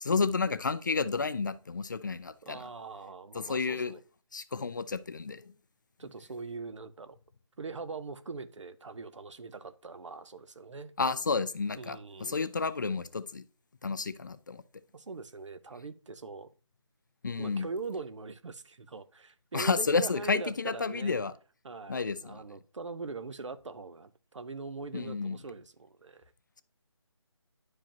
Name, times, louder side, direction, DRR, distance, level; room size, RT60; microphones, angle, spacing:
voice 1, 0.0-2.7 3.3-3.9 4.3-5.5 11.0-13.4 13.8-14.6 17.2-17.7 19.5-21.3 21.9-22.4 24.9-25.4, left 4 dB, 40° left, 0.4 m, -31 dB
voice 2, 2.4-4.0 6.0-7.2 7.6-10.9 11.8-12.4 14.9-16.5 17.4-21.2 21.6-26.2, right 4 dB, 75° right, 0.8 m, -42 dB
10.5 x 4.9 x 2.9 m
figure-of-eight pair, 165°, 16 cm